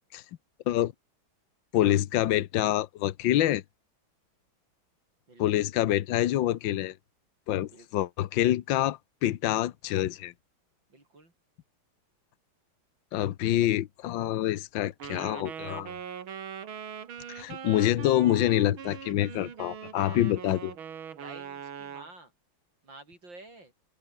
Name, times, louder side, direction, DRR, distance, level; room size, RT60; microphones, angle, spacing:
voice 1, 1.7-3.6 5.4-6.9 7.5-10.3 13.1-15.9 17.3-20.7, left 13 dB, 75° left, 1.6 m, -26 dB
voice 2, 5.3-5.6 7.7-7.9 10.9-11.3 21.2-22.3 22.8-23.7, right 2 dB, 65° right, 8.3 m, -50 dB
Wind instrument woodwind instrument, 15.0-22.1, right 8 dB, 85° right, 2.6 m, -41 dB
open air
omnidirectional pair, 2.2 m